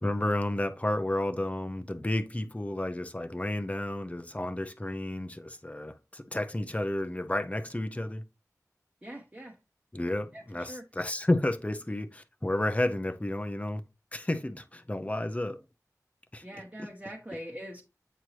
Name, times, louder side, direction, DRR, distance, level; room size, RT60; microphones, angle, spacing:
voice 1, 0.0-8.2 9.9-13.8 14.1-15.6 16.3-16.9 17.3-17.4, left 1 dB, 20° left, 0.7 m, -31 dB
voice 2, 9.0-9.5 10.3-10.4 10.7-10.8 16.4-17.8, equal, 20° right, 1.2 m, -42 dB
8.1 x 4.5 x 3.0 m
wide cardioid pair, 45°, 6 cm